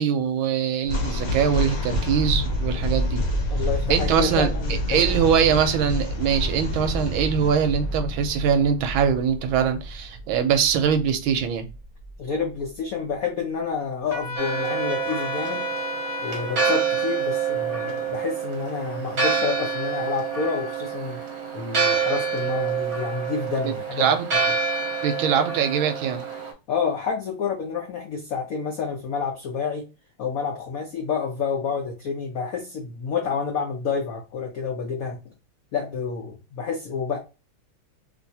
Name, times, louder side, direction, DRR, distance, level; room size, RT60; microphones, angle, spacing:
voice 1, 0.0-3.3 3.9-11.7 21.8-22.0 23.6-24.3 25.0-26.2, right 7 dB, 75° right, 1.3 m, -23 dB
sound 1, 0.8-12.1, left 1 dB, 60° left, 1.0 m, -28 dB
voice 2, 3.5-5.2 12.2-15.7 16.2-21.2 21.5-24.1 26.7-29.9 30.2-35.2 35.7-37.2, left 5 dB, 90° left, 0.7 m, -29 dB
Trumpet, 14.1-16.6, left 2 dB, 15° left, 1.0 m, -32 dB
Church bell, 14.4-26.5, right 5 dB, 55° right, 1.1 m, -27 dB
3.4 x 2.7 x 2.6 m
omnidirectional pair, 2.4 m